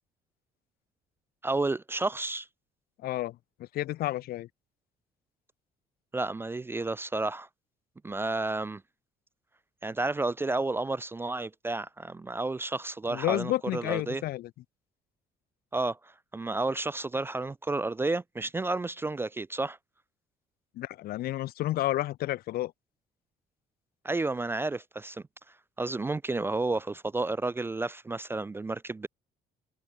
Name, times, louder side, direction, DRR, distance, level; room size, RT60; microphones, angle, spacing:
voice 1, 1.4-2.5 6.1-7.5 8.0-8.8 9.8-14.2 15.7-19.8 24.0-25.2 25.8-29.1, right 2 dB, 15° right, 0.3 m, -31 dB
voice 2, 3.0-3.4 3.7-4.5 13.1-14.5 20.8-22.7, left 15 dB, 65° left, 0.5 m, -30 dB
cardioid pair, 110°, 17 cm